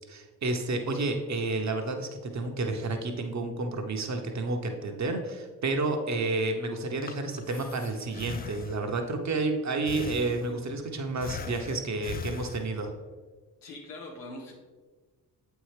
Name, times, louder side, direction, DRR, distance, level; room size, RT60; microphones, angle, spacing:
voice 1, 0.1-12.9, right 3 dB, 40° right, 4 dB, 1.0 m, -30 dB
Breathing, 6.8-9.1 9.9-10.8 11.2-13.0, left 5 dB, 20° left, 0.4 m, -40 dB
voice 2, 13.6-14.5, left 2 dB, 90° left, 1 dB, 1.1 m, -42 dB
7.7 x 4.6 x 3.3 m, 1.3 s
hypercardioid pair, 45°, 45 cm